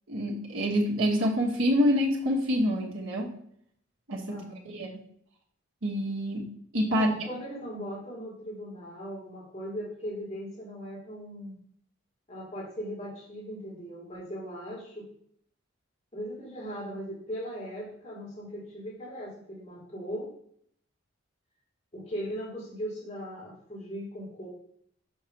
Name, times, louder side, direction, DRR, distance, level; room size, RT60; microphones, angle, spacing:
voice 1, 0.1-3.3 4.1-4.4 4.7-5.0 5.8-7.2, equal, 85° right, -2 dB, 1.2 m, -27 dB
voice 2, 4.3-4.8 6.9-11.6 12.3-15.1 16.1-20.3 21.9-24.5, equal, 30° left, -7 dB, 2.4 m, -39 dB
6.4 x 3.2 x 5.8 m, 0.66 s
head